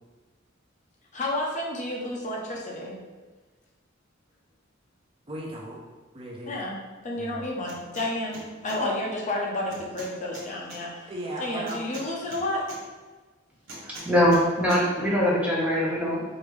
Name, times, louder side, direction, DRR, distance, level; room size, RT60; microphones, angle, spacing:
voice 1, 1.1-3.0 6.5-6.8 7.0-11.0 11.4-12.7, left 1 dB, 40° left, -2 dB, 0.6 m, -31 dB
voice 2, 5.3-5.8 6.1-6.5 7.1-7.5 8.8-9.0 11.1-11.8, right 1 dB, 30° right, -3 dB, 0.6 m, -36 dB
sound 1, 7.6-8.1 8.3-8.8 9.7-10.8 11.7-12.8 13.7-14.4 14.7-14.8, right 1 dB, 85° right, 1.2 m, -42 dB
voice 3, 13.8-16.2, equal, 5° right, -6 dB, 1.0 m, -22 dB
4.8 x 2.6 x 3.2 m, 1.3 s
head